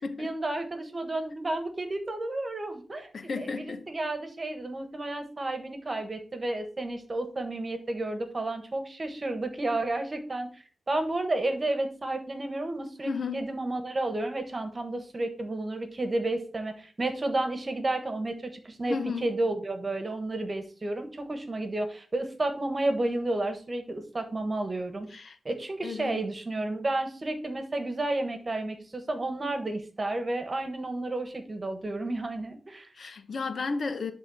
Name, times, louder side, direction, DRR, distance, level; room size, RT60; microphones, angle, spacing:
voice 1, 0.2-18.9 19.2-25.1 25.4-32.9, right 2 dB, 35° right, 1.4 m, -31 dB
voice 2, 3.1-3.9 13.0-13.4 18.9-19.3 25.1-25.4 25.8-26.3 32.9-34.1, left 4 dB, 60° left, 0.9 m, -33 dB
10.5 x 3.6 x 4.2 m
wide cardioid pair, 90°, 0 cm